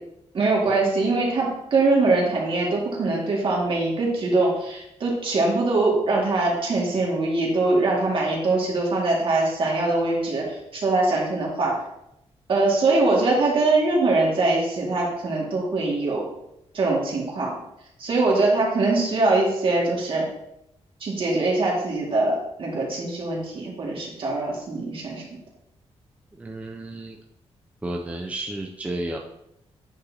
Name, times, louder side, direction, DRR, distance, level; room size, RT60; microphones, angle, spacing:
voice 1, 0.3-11.7 12.5-16.3 16.7-17.5 18.0-20.3 21.0-25.2, right 2 dB, 55° right, -3 dB, 2.1 m, -22 dB
voice 2, 26.3-27.2 27.8-29.2, right 1 dB, 10° right, 1 dB, 0.5 m, -32 dB
9.4 x 5.2 x 2.9 m, 0.83 s
wide cardioid pair, 125°, 11 cm